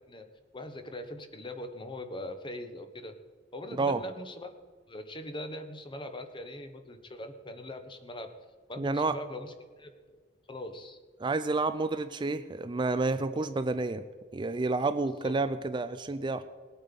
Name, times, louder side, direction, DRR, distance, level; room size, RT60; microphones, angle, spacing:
voice 1, 0.5-3.1 3.5-4.5 4.9-8.3 8.7-9.5 9.8-10.2 10.5-11.0 15.2-15.3, left 1 dB, 25° left, 8 dB, 1.1 m, -41 dB
voice 2, 8.8-9.2 11.2-14.0 14.3-16.4, right 3 dB, 25° right, 11 dB, 0.4 m, -29 dB
19.5 x 8.8 x 5.3 m, 1.5 s
head